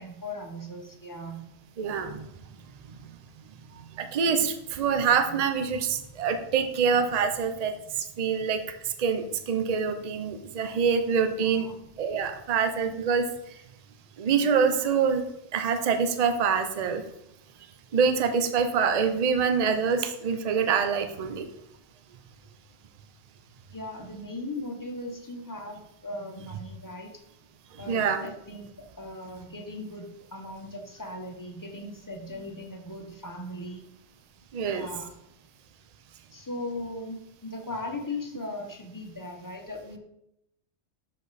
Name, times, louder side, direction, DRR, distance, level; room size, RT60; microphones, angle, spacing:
voice 1, 0.0-1.5 11.4-11.8 23.7-27.2 27.8-28.7 29.0-33.9 34.7-35.1 36.3-40.0, left 1 dB, 20° left, 2 dB, 0.8 m, -38 dB
voice 2, 1.8-2.3 2.9-3.0 3.7-7.7 8.2-8.6 9.0-11.7 12.0-13.2 14.2-15.2 15.5-17.0 17.9-21.5 27.8-28.3 34.5-34.9, right 6 dB, 45° right, 8 dB, 0.6 m, -25 dB
6.5 x 5.2 x 4.0 m, 0.80 s
omnidirectional pair, 1.2 m